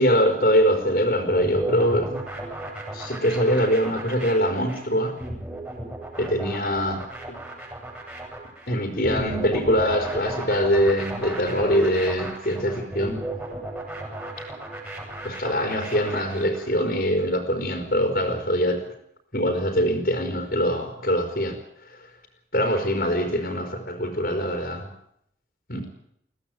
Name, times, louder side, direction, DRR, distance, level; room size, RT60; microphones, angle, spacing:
voice 1, 0.0-2.3 2.9-5.2 6.2-7.4 8.7-13.3 15.2-18.8 19.3-21.6 22.5-24.9 25.7-25.9, equal, 55° left, 4 dB, 4.3 m, -23 dB
sound 1, 1.3-16.7, right 1 dB, 10° right, 7.1 m, -35 dB
22.5 x 16.5 x 9.1 m, 0.73 s
head